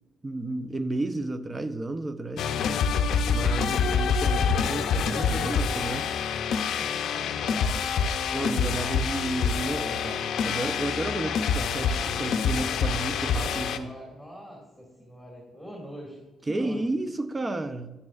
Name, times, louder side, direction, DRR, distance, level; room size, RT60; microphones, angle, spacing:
voice 1, 0.2-2.5 3.3-6.1 8.3-14.0 16.5-17.9, right 2 dB, 20° right, 11 dB, 0.6 m, -32 dB
sound 1, 2.4-13.8, left 6 dB, 70° left, 0.5 m, -26 dB
voice 2, 6.7-7.8 12.5-12.8 13.3-16.9, equal, 5° right, -2 dB, 2.0 m, -43 dB
9.6 x 8.7 x 2.4 m, 1.2 s
cardioid pair, 100°, 0 cm